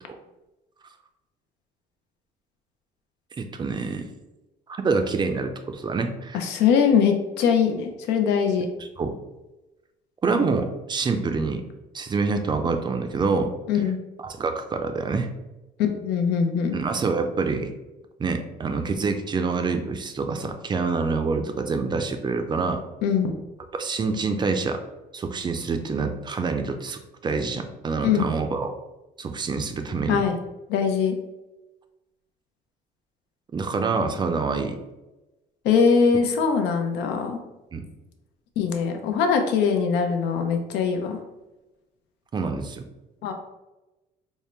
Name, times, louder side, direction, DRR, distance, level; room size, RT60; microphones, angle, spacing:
voice 1, 3.4-4.0 4.7-6.5 8.8-9.2 10.2-11.6 11.9-13.5 14.2-15.3 16.7-17.7 18.2-22.8 23.7-24.8 25.1-28.8 29.2-30.2 33.5-34.8 37.7-37.9 42.3-42.8, right 4 dB, 25° right, 6 dB, 0.4 m, -26 dB
voice 2, 6.3-8.7 13.7-14.0 15.8-16.8 23.0-23.3 28.0-28.3 30.1-30.4 30.7-31.2 35.6-37.4 38.6-41.2 43.2-43.3, left 6 dB, 85° left, 5 dB, 0.6 m, -22 dB
3.6 x 2.0 x 4.2 m, 1.0 s
cardioid pair, 110°, 17 cm